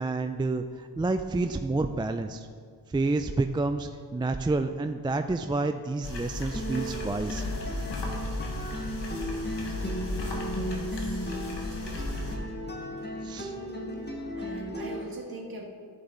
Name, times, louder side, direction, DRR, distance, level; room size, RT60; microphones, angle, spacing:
voice 1, 0.0-2.5 2.9-7.4 13.2-13.5, right 3 dB, 10° right, 7 dB, 0.4 m, -29 dB
sound 1, 6.0-12.4, left 2 dB, 60° left, 1.6 m, -35 dB
sound 2, 6.5-15.0, equal, 20° left, 1.8 m, -35 dB
voice 2, 10.5-11.4 11.7-12.1 14.4-15.6, right 1 dB, 45° right, -1 dB, 2.1 m, -42 dB
14.0 x 5.3 x 3.9 m, 2.1 s
supercardioid pair, 45°, 47 cm